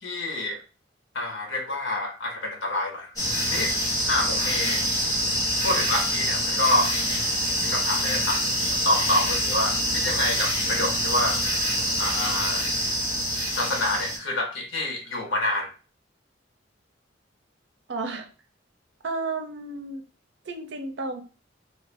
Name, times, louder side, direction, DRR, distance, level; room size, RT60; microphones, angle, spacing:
voice 1, 0.0-0.6 1.1-3.1 3.4-3.7 4.1-4.8 5.6-6.9 7.6-8.5 8.8-11.4 12.0-12.7 13.5-15.7, left 1 dB, 80° left, 1 dB, 1.1 m, -27 dB
sound 1, 3.2-14.2, equal, 20° left, 1.3 m, -25 dB
voice 2, 17.9-18.3 19.0-20.0 20.5-21.2, right 3 dB, 60° right, 5 dB, 0.6 m, -32 dB
3.3 x 2.5 x 3.3 m, 0.36 s
head